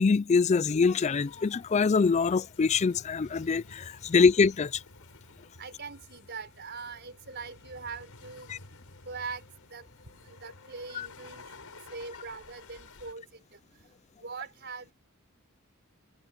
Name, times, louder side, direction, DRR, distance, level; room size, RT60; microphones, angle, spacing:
voice 1, 0.0-4.8 8.5-8.6 11.0-11.1, left 5 dB, 30° left, 0.3 m, -24 dB
sound 1, 1.1-13.1, left 3 dB, 85° left, 4.5 m, -52 dB
sound 2, 2.6-13.0, left 3 dB, 50° left, 7.5 m, -66 dB
voice 2, 5.6-8.5 9.1-9.9 10.2-11.4 11.7-13.6 14.2-14.9, right 5 dB, 50° right, 5.7 m, -42 dB
head